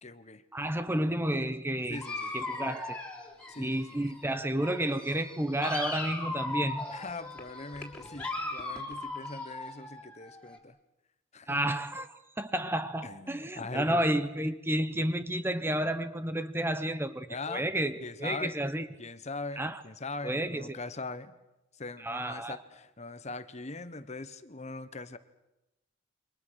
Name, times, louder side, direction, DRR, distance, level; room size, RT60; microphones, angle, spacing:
voice 1, 0.0-0.4 1.9-2.3 3.5-4.1 6.9-10.8 11.3-11.7 13.0-14.0 17.3-17.7 18.0-18.6 19.0-21.3 21.7-25.2, left 3 dB, 30° left, 12 dB, 1.2 m, -41 dB
voice 2, 0.5-2.0 2.3-3.0 3.6-6.8 11.5-18.9 19.6-19.8 20.2-20.8 22.0-22.6, right 1 dB, 10° right, 11 dB, 0.9 m, -31 dB
Dog, 1.9-4.3 4.6-10.6, left 2 dB, 5° left, 3.6 m, -38 dB
28.5 x 24.5 x 6.6 m, 0.93 s
head